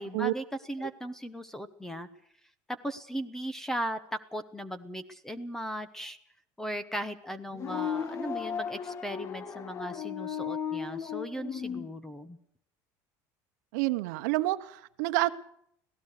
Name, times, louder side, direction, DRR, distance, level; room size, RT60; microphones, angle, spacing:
voice 1, 0.0-2.1 2.8-4.0 4.3-6.2 6.6-12.4, equal, 5° left, 14 dB, 0.9 m, -37 dB
sound 1, 7.5-11.9, left 7 dB, 30° left, 1.1 m, -35 dB
voice 2, 13.7-15.3, right 19 dB, 85° right, 10 dB, 0.9 m, -28 dB
25.5 x 17.5 x 6.7 m, 0.71 s
cardioid pair, 175°, 9 cm